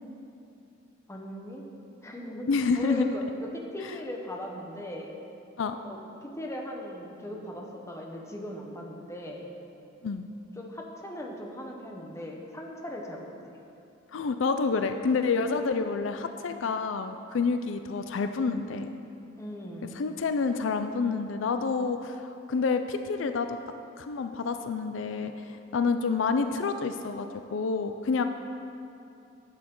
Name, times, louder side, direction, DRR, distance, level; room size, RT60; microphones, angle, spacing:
voice 1, 1.1-1.6 2.0-2.5 2.7-3.5 3.7-5.1 5.8-9.5 10.6-13.5 19.4-19.9, left 1 dB, 15° left, 0 dB, 1.0 m, -39 dB
voice 2, 2.5-3.1 5.6-5.8 10.0-10.3 14.1-18.9 19.9-23.6 24.0-28.3, left 4 dB, 80° left, 8 dB, 0.4 m, -28 dB
11.5 x 8.5 x 3.8 m, 2.7 s
head